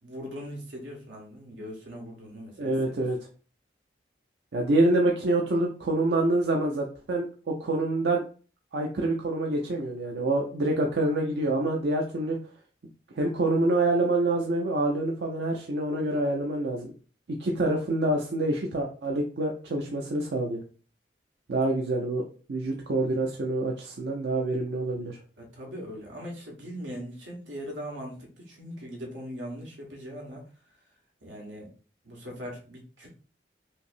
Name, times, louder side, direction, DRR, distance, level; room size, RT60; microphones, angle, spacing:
voice 1, 0.0-3.1 25.4-30.7 31.2-31.7 32.0-33.1, equal, 90° right, 0 dB, 1.3 m, -40 dB
voice 2, 2.6-3.2 4.5-8.2 8.7-12.4 13.2-16.9 17.4-20.6 21.5-22.2 22.5-25.2, right 2 dB, 70° right, 0 dB, 0.5 m, -26 dB
5.3 x 2.0 x 2.5 m, 0.39 s
head